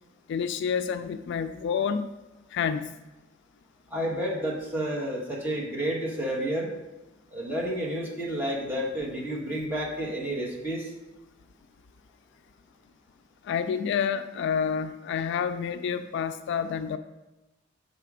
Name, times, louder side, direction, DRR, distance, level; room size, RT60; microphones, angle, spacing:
voice 1, 0.3-2.1 2.5-2.9 13.4-17.0, left 7 dB, 60° left, 10 dB, 0.3 m, -28 dB
voice 2, 3.9-6.7 7.3-10.9, right 1 dB, 10° right, -3 dB, 1.2 m, -30 dB
6.6 x 4.2 x 4.8 m, 1.0 s
head